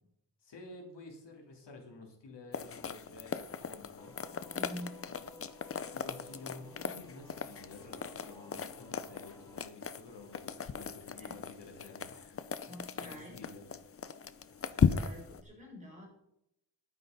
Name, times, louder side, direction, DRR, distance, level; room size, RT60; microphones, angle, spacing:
voice 1, 0.4-4.1 5.0-5.3 5.9-12.3 12.7-13.7, left 3 dB, 75° left, 1 dB, 3.3 m, -51 dB
sound 1, 2.5-15.4, left 6 dB, 35° left, 0.6 m, -37 dB
Singing / Musical instrument, 4.0-9.6, left 1 dB, 10° left, 3.1 m, -56 dB
voice 2, 4.5-5.1 11.2-11.4 12.7-13.4 14.7-16.1, equal, 15° right, -3 dB, 5.8 m, -47 dB
10.5 x 9.6 x 5.3 m, 0.78 s
wide cardioid pair, 165°, 42 cm